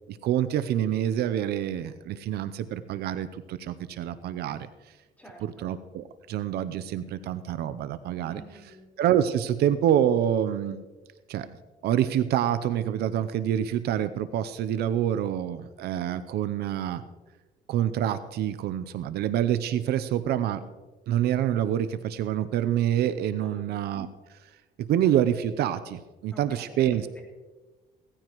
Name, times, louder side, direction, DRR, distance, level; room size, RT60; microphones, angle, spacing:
voice 1, 0.1-4.7 5.4-8.4 9.0-10.8 11.3-11.5 11.8-17.0 17.7-20.6 21.1-24.1 24.8-27.0, right 10 dB, 70° right, 13 dB, 0.6 m, -27 dB
voice 2, 5.2-5.6 8.2-8.9 23.4-23.8 26.3-27.2, right 1 dB, 10° left, -2 dB, 4.3 m, -49 dB
18.0 x 14.5 x 3.0 m, 1.3 s
cardioid pair, 110°, 17 cm